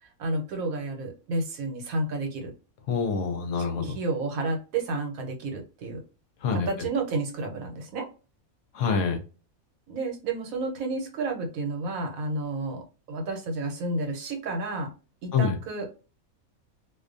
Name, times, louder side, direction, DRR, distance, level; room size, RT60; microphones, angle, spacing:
voice 1, 0.2-2.5 3.8-6.0 6.5-8.1 9.9-14.9 15.2-15.9, right 2 dB, 75° right, 3 dB, 1.1 m, -31 dB
voice 2, 2.9-4.0 6.4-6.7 8.7-9.2 15.3-15.6, left 5 dB, 70° left, 4 dB, 0.8 m, -26 dB
2.4 x 2.2 x 2.5 m, 0.34 s
omnidirectional pair, 1.5 m